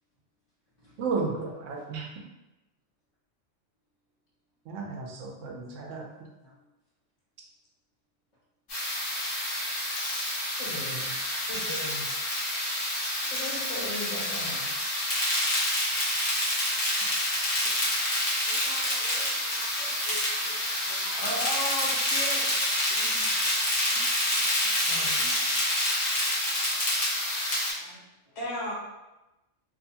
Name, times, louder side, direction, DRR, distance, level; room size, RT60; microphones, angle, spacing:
voice 1, 1.0-2.1 4.7-6.0, right 4 dB, 85° right, 0 dB, 0.9 m, -33 dB
sound 1, 8.7-27.7, left 1 dB, 50° left, 1.1 m, -28 dB
voice 2, 10.6-11.1 11.5-12.1 13.3-14.7 21.2-22.5 24.9-25.2 28.4-28.7, left 1 dB, 75° left, -4 dB, 1.0 m, -35 dB
voice 3, 18.4-21.1 22.9-23.3 23.9-25.4 27.8-28.0, equal, 35° left, -12 dB, 0.6 m, -49 dB
2.6 x 2.2 x 2.7 m, 1.0 s
omnidirectional pair, 1.3 m